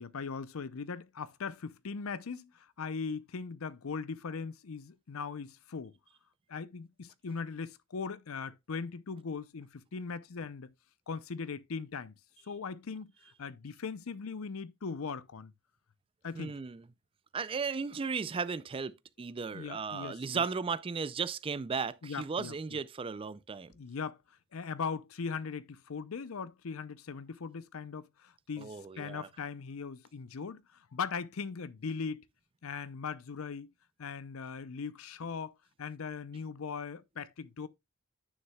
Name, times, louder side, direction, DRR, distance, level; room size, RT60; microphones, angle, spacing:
voice 1, 0.0-5.9 6.5-10.7 11.1-12.1 12.5-13.1 13.4-15.5 16.2-16.6 19.5-20.4 22.0-22.8 23.7-24.2 24.5-32.3 32.6-33.7 34.0-37.7, left 5 dB, 75° left, 0.6 m, -39 dB
voice 2, 16.3-16.8 17.3-23.7 28.6-29.3, right 5 dB, 25° right, 0.3 m, -35 dB
9.6 x 6.4 x 2.2 m
head